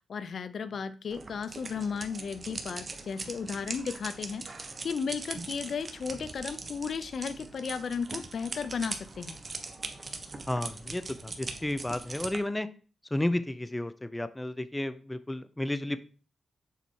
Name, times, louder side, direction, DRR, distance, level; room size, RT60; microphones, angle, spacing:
voice 1, 0.1-4.4 4.8-9.4, left 6 dB, 65° left, 14 dB, 0.5 m, -34 dB
sound 1, 1.1-12.4, right 3 dB, 35° right, 1.1 m, -41 dB
voice 2, 10.5-12.7 13.1-16.0, left 1 dB, 15° left, 13 dB, 0.6 m, -32 dB
7.0 x 4.4 x 4.5 m, 0.37 s
cardioid pair, 90°, 0 cm